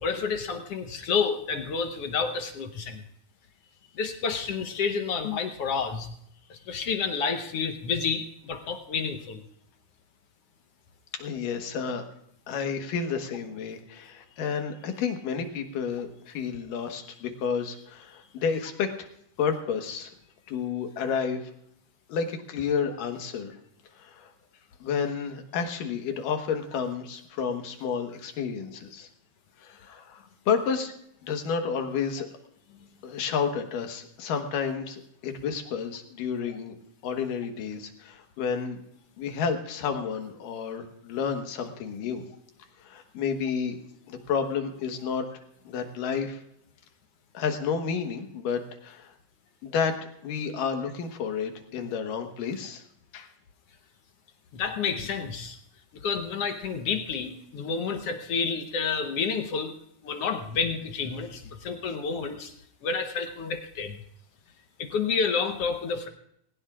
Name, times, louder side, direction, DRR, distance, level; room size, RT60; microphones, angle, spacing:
voice 1, 0.0-3.0 4.0-6.1 6.5-9.4 54.5-55.6 55.9-59.7 60.0-62.5 62.8-64.0 64.8-66.1, left 5 dB, 65° left, 6 dB, 1.6 m, -29 dB
voice 2, 11.1-12.0 12.5-19.1 19.4-20.1 20.5-21.4 22.1-23.6 23.9-24.3 24.8-29.1 29.6-30.9 31.2-32.3 33.0-36.8 37.0-38.8 39.2-42.2 42.8-43.8 44.1-45.3 45.6-46.4 47.3-49.1 49.6-50.0 50.2-52.8 53.1-53.3, left 6 dB, 85° left, 5 dB, 3.0 m, -30 dB
20.0 x 18.0 x 2.5 m, 0.72 s
omnidirectional pair, 3.7 m